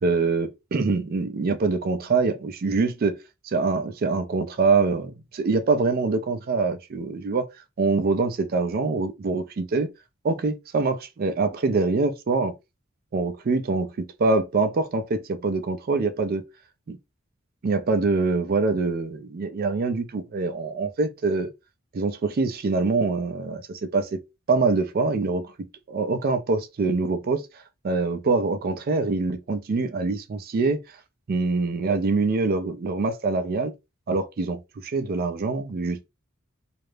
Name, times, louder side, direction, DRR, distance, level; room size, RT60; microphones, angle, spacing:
voice 1, 0.0-3.2 3.4-7.5 7.8-9.9 10.2-12.5 13.1-16.5 16.9-17.0 17.6-21.5 21.9-24.2 24.5-30.8 31.3-33.7 34.1-36.0, right 3 dB, 45° right, 0.4 m, -24 dB
2.4 x 2.0 x 3.1 m
head